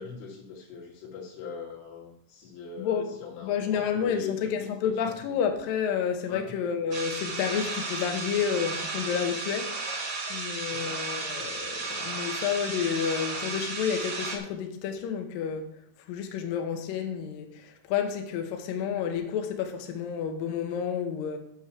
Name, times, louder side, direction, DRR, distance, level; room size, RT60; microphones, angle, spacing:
voice 1, 0.0-5.2 6.3-6.4 9.1-9.4 9.6-10.4 10.7-11.0, left 6 dB, 90° left, 4.9 m, -41 dB
voice 2, 2.8-3.2 3.4-9.6 10.3-15.7 16.1-21.4, left 7 dB, 70° left, 2.2 m, -30 dB
sound 1, 6.9-14.4, right 3 dB, 50° right, 1.8 m, -34 dB
9.0 x 6.4 x 6.0 m
omnidirectional pair, 5.5 m